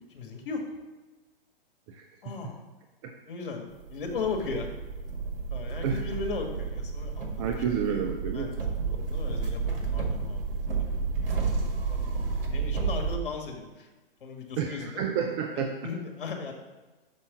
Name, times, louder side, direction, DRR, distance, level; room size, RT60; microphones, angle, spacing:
voice 1, 0.1-0.6 2.2-2.6 3.2-4.7 5.5-7.8 8.3-8.6 8.9-12.1 12.5-13.9 14.2-15.0 15.5-16.5, left 4 dB, 65° left, 3 dB, 1.6 m, -37 dB
sound 1, 3.8-13.1, right 4 dB, 70° right, 1.8 m, -31 dB
voice 2, 7.4-8.5 8.9-9.1 14.6-15.7, right 7 dB, 30° right, 4 dB, 0.5 m, -30 dB
6.2 x 5.4 x 6.0 m, 1.2 s
figure-of-eight pair, 115°, 29 cm